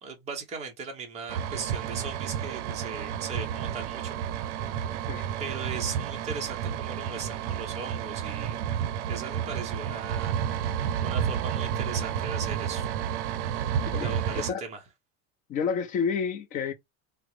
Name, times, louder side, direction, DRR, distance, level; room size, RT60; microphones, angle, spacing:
voice 1, 0.0-4.2 4.9-5.1 5.4-8.7 9.1-12.9 14.0-14.8, right 5 dB, 20° right, 0.7 m, -38 dB
sound 1, 1.3-14.5, right 9 dB, 85° right, 0.5 m, -31 dB
voice 2, 13.9-14.6 15.5-16.7, left 6 dB, 25° left, 0.3 m, -30 dB
3.4 x 2.0 x 3.0 m
cardioid pair, 160°, 34 cm